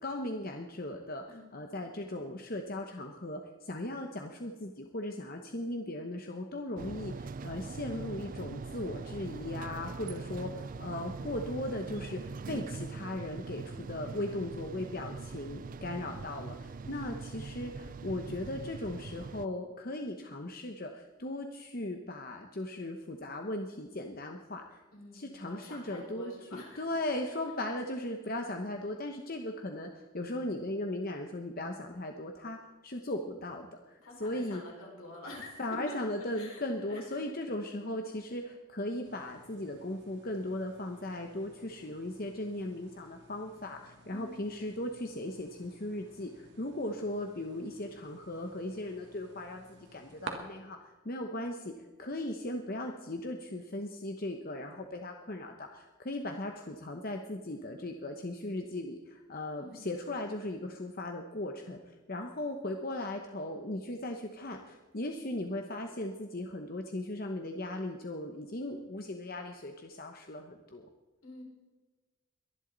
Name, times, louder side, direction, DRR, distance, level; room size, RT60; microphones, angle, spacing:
voice 1, 0.0-1.2 1.5-24.8 25.1-34.6 35.6-70.9, left 1 dB, 40° left, 4 dB, 1.0 m, -38 dB
sound 1, 6.8-19.5, right 4 dB, 40° right, 0.3 m, -42 dB
voice 2, 10.1-10.6 16.8-17.0 24.9-26.9 27.4-27.5 34.0-37.2 44.1-44.4 59.5-60.0 68.6-68.8 71.2-71.4, left 2 dB, 75° left, -2 dB, 5.3 m, -48 dB
sound 2, 39.0-50.3, right 3 dB, 55° right, 1.8 m, -52 dB
23.0 x 11.0 x 4.0 m, 1.2 s
head